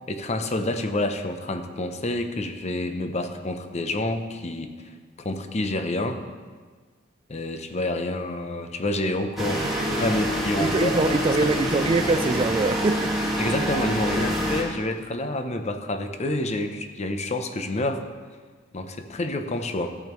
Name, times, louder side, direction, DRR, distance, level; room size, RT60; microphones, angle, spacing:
voice 1, 0.1-6.2 7.3-11.0 11.4-11.5 13.4-18.0 18.7-20.0, left 1 dB, 35° left, 7 dB, 0.6 m, -28 dB
sound 1, 9.4-14.6, equal, ahead, 1.7 m, -26 dB
voice 2, 10.6-13.1, right 3 dB, 25° right, 10 dB, 0.3 m, -23 dB
13.5 x 8.8 x 3.1 m, 1.5 s
head